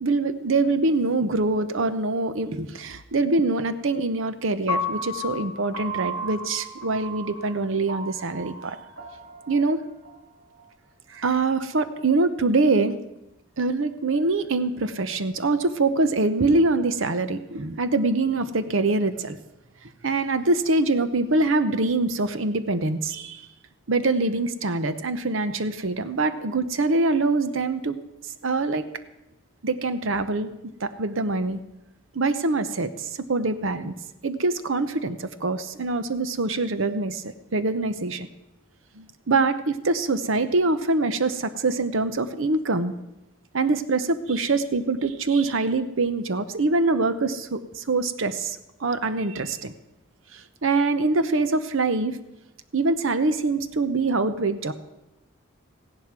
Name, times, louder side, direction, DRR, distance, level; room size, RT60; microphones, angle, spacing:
voice 1, 0.0-8.8 9.5-9.8 11.1-13.0 13.6-19.4 20.0-23.4 23.9-28.0 28.4-28.8 29.6-30.5 30.8-31.6 32.1-33.9 34.2-38.3 39.0-42.9 43.5-49.7 50.3-52.2 52.7-54.7, right 3 dB, 70° right, 12 dB, 0.8 m, -24 dB
Piano, 4.7-10.9, left 1 dB, 85° right, 2.8 m, -34 dB
15.5 x 11.0 x 6.0 m, 0.91 s
head